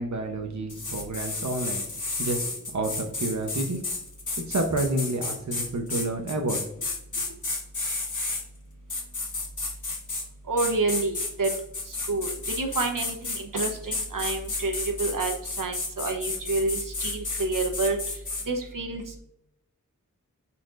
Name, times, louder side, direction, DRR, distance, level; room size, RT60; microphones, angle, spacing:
voice 1, 0.0-1.8 2.2-3.8 4.5-6.9 7.1-7.2, right 2 dB, 60° right, 3 dB, 0.9 m, -29 dB
sound 1, 0.7-8.4 8.9-10.3 10.6-18.5, left 3 dB, 65° left, 1.5 m, -32 dB
voice 2, 10.5-11.5 11.9-18.0 18.5-19.0, right 3 dB, 80° right, 3 dB, 1.0 m, -28 dB
10.0 x 4.3 x 2.5 m, 0.82 s
wide cardioid pair, 80°, 32 cm